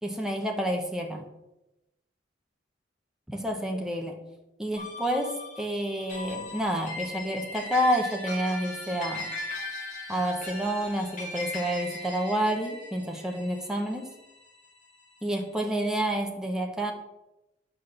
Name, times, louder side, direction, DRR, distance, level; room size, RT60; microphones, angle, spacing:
voice 1, 0.0-1.2 3.3-4.2 4.6-9.3 10.1-14.1 15.2-16.9, right 1 dB, 5° right, 1 dB, 1.2 m, -29 dB
sound 1, 4.8-15.4, left 2 dB, 45° left, 3.4 m, -39 dB
9.4 x 6.0 x 6.7 m, 0.94 s
head